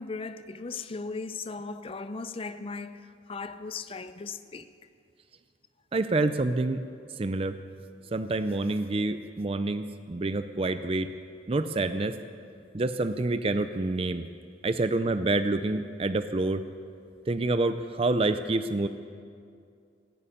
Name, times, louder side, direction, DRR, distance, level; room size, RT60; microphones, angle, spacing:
voice 1, 0.0-4.7, left 4 dB, 30° left, 0.5 m, -37 dB
voice 2, 5.9-6.8 7.2-7.6 8.1-11.1 11.5-12.2 12.7-14.2 14.6-16.6 17.3-18.9, right 2 dB, 30° right, 0.5 m, -27 dB
17.0 x 10.0 x 8.5 m
head